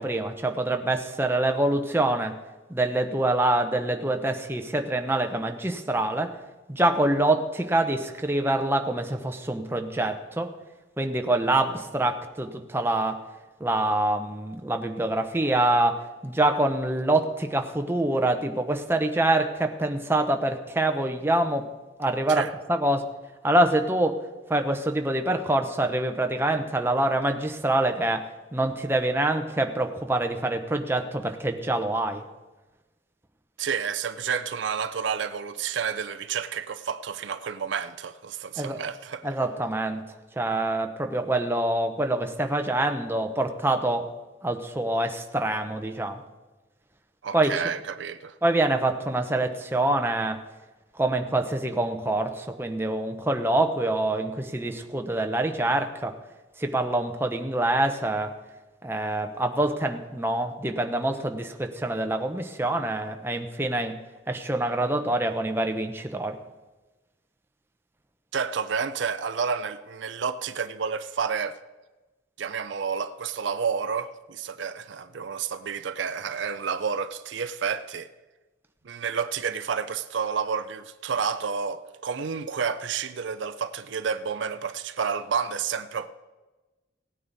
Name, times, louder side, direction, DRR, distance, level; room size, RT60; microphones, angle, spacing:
voice 1, 0.0-2.4 2.7-6.4 6.7-10.5 11.0-13.2 13.6-21.7 22.0-23.0 23.4-24.2 24.5-32.2 38.6-38.8 39.2-40.0 40.4-44.1 44.4-46.2 47.3-47.6 48.4-50.4 50.9-56.2 56.6-58.4 58.8-63.9 64.3-66.4, right 1 dB, 10° right, 0.8 m, -25 dB
voice 2, 33.6-39.2 47.2-48.4 68.3-71.6 72.4-78.1 78.8-86.1, right 6 dB, 70° right, 0.5 m, -30 dB
17.0 x 9.4 x 4.1 m
head